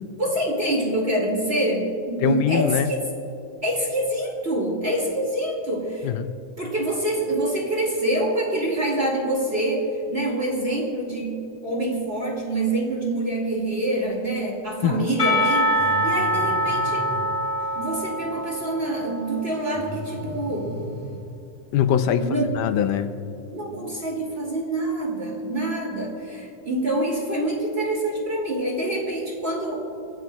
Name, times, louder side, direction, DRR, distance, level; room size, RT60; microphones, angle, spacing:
voice 1, 0.2-3.0 3.6-6.1 6.6-15.7 16.0-17.0 17.7-20.7 22.2-22.5 23.5-29.8, right 1 dB, 20° right, -2 dB, 2.3 m, -26 dB
voice 2, 2.2-2.9 6.0-6.3 14.8-15.1 21.7-22.3 22.6-23.1, left 9 dB, 85° left, 9 dB, 2.2 m, -22 dB
Percussion, 15.2-20.0, equal, 15° left, 1.0 m, -25 dB
Breathing, 15.8-17.3 19.7-21.2, right 1 dB, 80° right, 5.5 m, -35 dB
27.5 x 14.5 x 2.4 m, 2.8 s
omnidirectional pair, 3.7 m